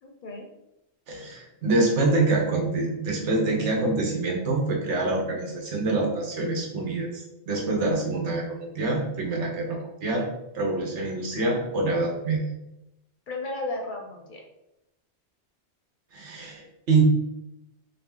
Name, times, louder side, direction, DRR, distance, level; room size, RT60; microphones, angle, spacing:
voice 1, 0.0-0.5 13.3-14.4, left 2 dB, 55° left, 2 dB, 0.7 m, -34 dB
voice 2, 1.1-10.3 10.5-12.4 16.1-17.0, right 3 dB, 85° right, 0 dB, 1.2 m, -26 dB
3.8 x 2.8 x 3.7 m, 0.89 s
omnidirectional pair, 1.2 m